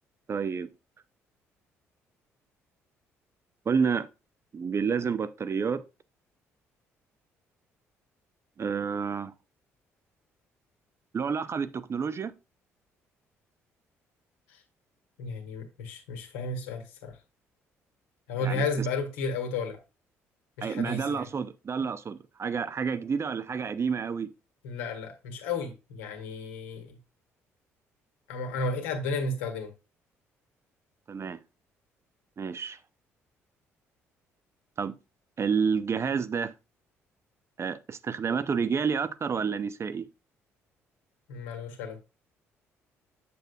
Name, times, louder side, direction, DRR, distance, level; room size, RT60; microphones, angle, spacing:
voice 1, 0.3-0.7 3.7-4.1 4.5-5.8 8.6-9.3 11.1-12.3 18.4-18.9 20.6-24.3 31.1-31.4 32.4-32.8 34.8-34.9 35.4-36.5 37.6-40.0, right 6 dB, 40° right, 0.6 m, -29 dB
voice 2, 15.2-17.2 18.3-19.8 20.6-21.2 24.6-26.9 28.3-29.7 41.3-42.0, left 3 dB, 80° left, 1.8 m, -33 dB
7.8 x 6.9 x 2.3 m
hypercardioid pair, 50°, 7 cm